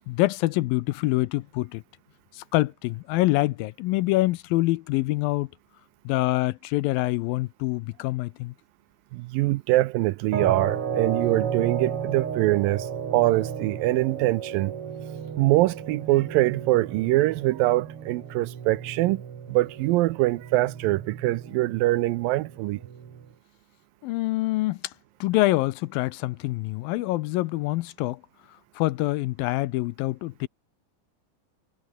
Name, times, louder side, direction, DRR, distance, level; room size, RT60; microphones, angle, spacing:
voice 1, 0.1-1.8 2.3-5.5 6.1-8.5 24.0-24.9 25.2-28.2 28.8-30.5, left 18 dB, 80° left, 2.3 m, -25 dB
voice 2, 9.1-14.7 15.4-19.2 19.5-22.8, right 18 dB, 80° right, 2.2 m, -23 dB
sound 1, 10.3-23.3, right 7 dB, 45° right, 2.5 m, -34 dB
omnidirectional pair, 4.4 m